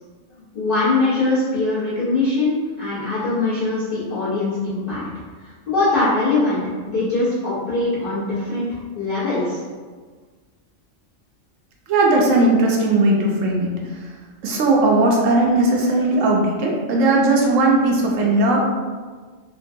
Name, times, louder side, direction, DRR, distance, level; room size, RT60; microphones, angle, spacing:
voice 1, 0.3-5.0 5.4-8.7 8.9-9.6, left 2 dB, 50° left, -13 dB, 1.2 m, -22 dB
voice 2, 11.9-13.7 14.0-14.1 14.4-18.6, right 2 dB, 90° right, -1 dB, 1.0 m, -17 dB
3.6 x 2.2 x 2.6 m, 1.5 s
omnidirectional pair, 1.3 m